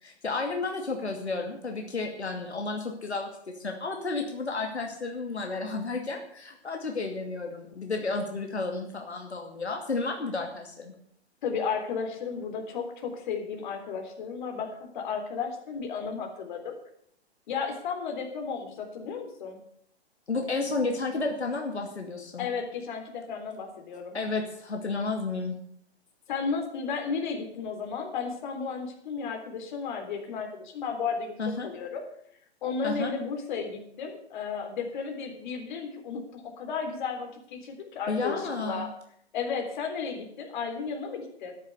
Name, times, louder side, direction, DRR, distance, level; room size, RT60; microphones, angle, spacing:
voice 1, 0.0-10.9 20.3-22.5 24.1-25.6 31.4-31.7 32.8-33.1 38.1-38.9, left 3 dB, 80° left, 2 dB, 2.4 m, -32 dB
voice 2, 11.4-16.8 17.5-19.6 22.4-24.2 26.3-31.4 31.6-32.0 32.6-38.9 39.3-41.5, left 5 dB, 45° left, 4 dB, 3.5 m, -33 dB
13.5 x 10.5 x 6.8 m, 0.68 s
figure-of-eight pair, 125°, 33 cm